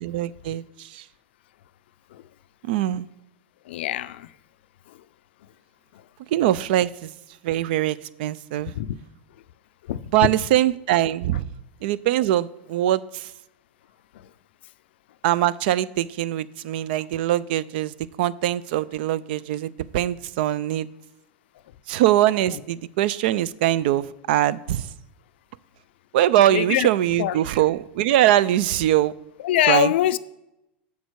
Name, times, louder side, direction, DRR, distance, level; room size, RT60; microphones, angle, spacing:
voice 1, 0.0-1.0 2.6-3.1 6.3-7.1 7.4-8.7 10.1-11.5 11.8-13.3 15.2-17.9 18.2-20.9 21.9-24.9 26.1-29.1 29.7-29.9, right 13 dB, 65° right, 0.4 m, -22 dB
voice 2, 3.7-4.3 8.8-8.9 9.9-10.0 14.1-14.3 26.5-26.9 27.2-27.4 29.4-30.2, left 13 dB, 75° left, 0.4 m, -23 dB
6.9 x 6.4 x 4.7 m
supercardioid pair, 125°, 6 cm